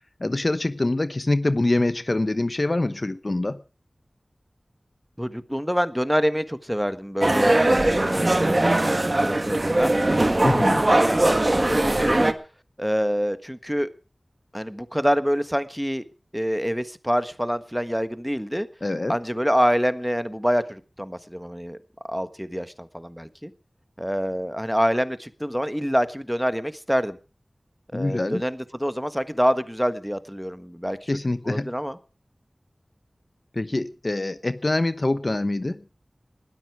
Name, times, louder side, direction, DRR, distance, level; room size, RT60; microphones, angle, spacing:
voice 1, 0.2-3.6 10.4-10.8 18.8-19.2 27.9-28.4 31.1-31.7 33.5-35.8, left 2 dB, 50° left, 0.9 m, -24 dB
voice 2, 5.2-10.0 10.2-12.3 12.8-13.9 14.5-16.0 16.3-18.7 19.1-21.8 22.1-23.5 24.0-27.2 27.9-31.1 31.4-32.0, equal, ahead, 1.4 m, -26 dB
sound 1, 7.2-12.3, right 1 dB, 45° right, 1.4 m, -20 dB
20.0 x 12.5 x 4.8 m
wide cardioid pair, 40°, 0 cm